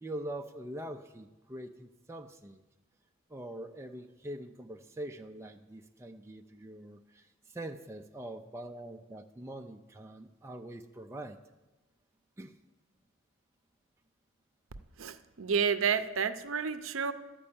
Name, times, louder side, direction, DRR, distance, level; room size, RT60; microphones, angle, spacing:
voice 1, 0.0-2.6 3.3-11.4 12.4-12.5, right 1 dB, 10° right, 4 dB, 0.4 m, -43 dB
voice 2, 15.0-17.1, right 6 dB, 70° right, 11 dB, 0.6 m, -30 dB
12.0 x 5.3 x 8.6 m, 1.1 s
head